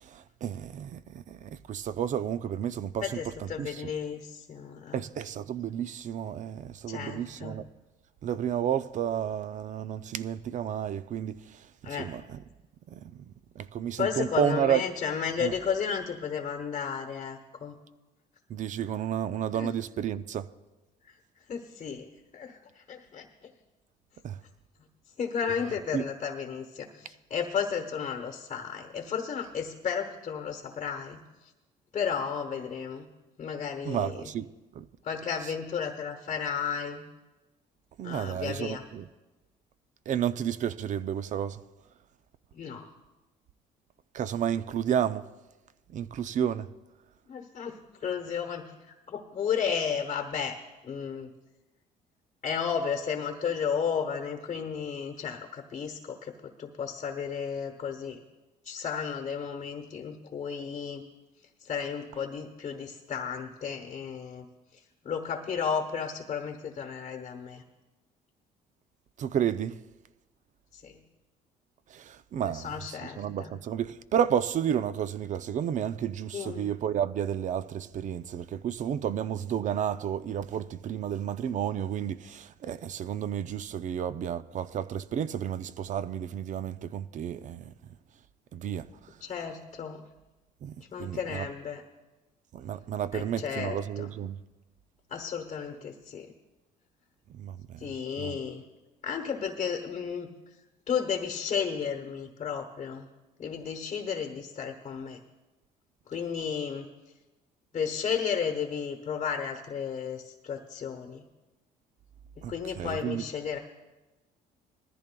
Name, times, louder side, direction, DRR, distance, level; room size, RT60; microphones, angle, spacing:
voice 1, 0.0-3.9 4.9-7.7 8.2-11.7 12.0-12.4 12.9-14.8 15.4-15.5 18.5-20.5 24.2-24.4 25.9-26.1 33.8-34.5 34.7-34.8 38.0-39.1 40.1-41.6 44.1-45.3 45.9-46.7 69.2-69.8 71.9-87.7 88.5-88.9 90.6-91.5 92.5-94.4 97.3-97.9 98.2-98.4 112.4-113.3, right 9 dB, 45° right, 0.5 m, -31 dB
voice 2, 3.0-5.1 6.9-7.6 11.8-12.1 14.0-17.8 19.5-19.7 21.5-22.1 22.3-23.2 25.2-31.2 31.9-33.1 33.4-34.3 35.0-37.0 38.0-38.8 42.5-42.9 47.3-48.6 49.1-51.3 52.4-58.2 58.6-61.0 61.6-64.5 65.0-67.6 70.7-71.0 72.4-73.5 76.3-76.7 89.2-90.0 90.9-91.8 93.1-94.1 95.1-96.3 97.8-98.6 99.0-100.3 100.9-103.1 103.4-105.2 106.1-106.9 107.7-111.2 112.4-113.6, left 7 dB, 40° left, 1.0 m, -33 dB
20.0 x 14.0 x 2.3 m
cardioid pair, 110°, 17 cm